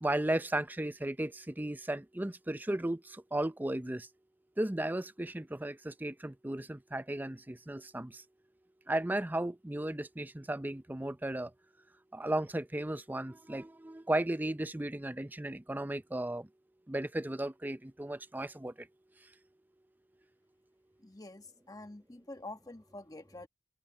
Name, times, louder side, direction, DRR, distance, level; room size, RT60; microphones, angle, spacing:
voice 1, 0.0-4.1 4.6-8.2 8.9-11.5 12.1-16.5 16.9-18.9, right 1 dB, 10° right, 0.5 m, -35 dB
voice 2, 21.0-23.5, left 2 dB, 20° left, 1.3 m, -47 dB
open air
head